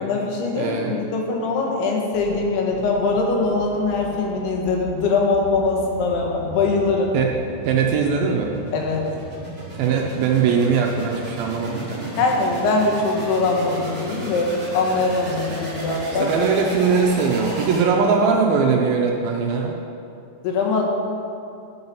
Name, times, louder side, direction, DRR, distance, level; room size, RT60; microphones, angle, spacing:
voice 1, 0.0-7.1 8.7-9.1 12.2-16.3 20.4-20.9, left 3 dB, 80° left, 0 dB, 3.0 m, -22 dB
voice 2, 0.5-1.0 7.1-7.3 7.7-8.6 9.7-12.2 16.2-19.8, right 5 dB, 80° right, 0 dB, 2.3 m, -20 dB
sound 1, 2.1-18.2, right 1 dB, 25° right, 1.7 m, -35 dB
11.0 x 4.8 x 5.5 m, 2.6 s
omnidirectional pair, 4.7 m